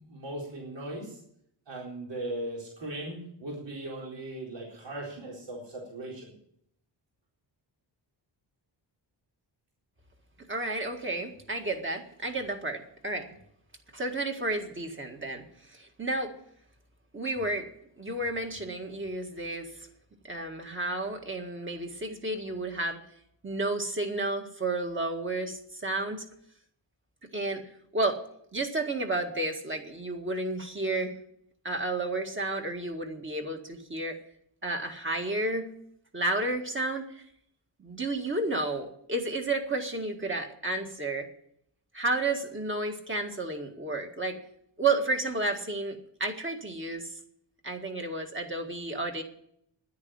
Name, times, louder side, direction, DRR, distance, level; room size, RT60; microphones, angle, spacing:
voice 1, 0.0-1.2 1.7-6.3, right 1 dB, 70° right, -3 dB, 4.2 m, -38 dB
voice 2, 10.5-13.3 13.9-16.3 17.1-17.7 18.0-19.9 20.2-23.0 23.4-26.3 27.2-28.2 28.5-31.2 31.6-34.2 34.6-35.7 36.1-37.2 37.8-41.3 41.9-44.4 44.8-47.1 47.6-49.2, right 2 dB, 25° right, 3 dB, 1.9 m, -31 dB
10.5 x 9.8 x 8.8 m, 0.70 s
wide cardioid pair, 145°, 44 cm